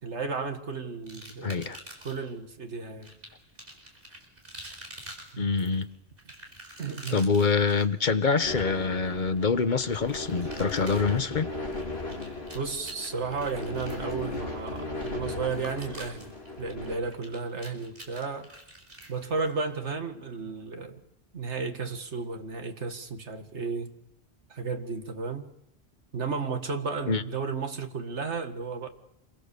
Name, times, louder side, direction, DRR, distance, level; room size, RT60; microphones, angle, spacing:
voice 1, 0.0-1.8 2.0-3.1 5.3-5.5 6.8-7.3 12.5-16.3 16.6-18.5 19.1-21.0 21.3-23.9 24.5-25.5 26.1-28.9, right 4 dB, 85° right, 2.1 m, -33 dB
sound 1, 1.1-2.3 3.0-19.9, right 1 dB, 55° right, 4.9 m, -48 dB
voice 2, 1.4-1.8 5.4-5.9 7.1-11.5 27.1-27.2, left 5 dB, 45° left, 1.2 m, -25 dB
sound 2, 8.4-17.0, left 2 dB, 65° left, 3.5 m, -37 dB
27.0 x 23.0 x 6.9 m
omnidirectional pair, 1.1 m